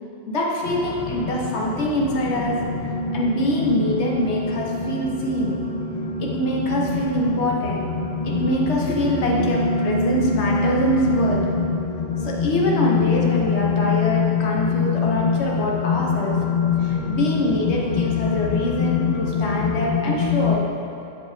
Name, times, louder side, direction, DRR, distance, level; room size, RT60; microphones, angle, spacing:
voice 1, 0.3-2.8 3.1-5.6 6.2-7.9 8.2-11.6 12.2-16.5 16.8-20.8, left 1 dB, 65° left, -2 dB, 1.1 m, -24 dB
sound 1, 0.6-20.6, left 5 dB, 50° left, 0.6 m, -24 dB
7.4 x 4.9 x 3.4 m, 2.6 s
omnidirectional pair, 1.3 m